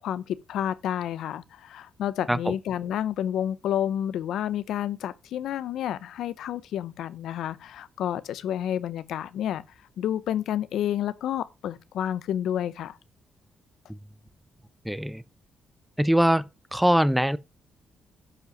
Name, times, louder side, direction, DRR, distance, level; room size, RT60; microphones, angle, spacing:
voice 1, 0.0-13.0, left 10 dB, 75° left, 0.6 m, -30 dB
voice 2, 14.9-15.2 16.0-17.4, equal, ahead, 0.4 m, -22 dB
11.0 x 5.5 x 5.1 m
cardioid pair, 160°, 0 cm